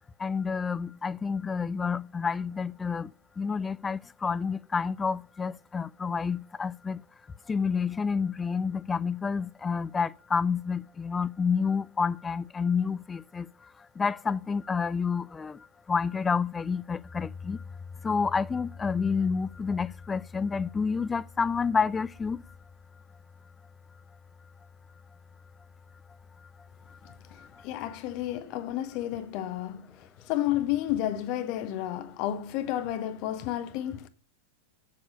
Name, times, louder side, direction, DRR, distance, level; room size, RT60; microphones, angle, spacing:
voice 1, 0.2-7.0 7.5-13.5 14.0-17.6 18.0-22.4 27.4-27.6, left 5 dB, 15° left, 0.3 m, -29 dB
voice 2, 27.3-34.1, left 12 dB, 45° left, 0.8 m, -31 dB
7.5 x 7.1 x 5.2 m
figure-of-eight pair, 90°, 0 cm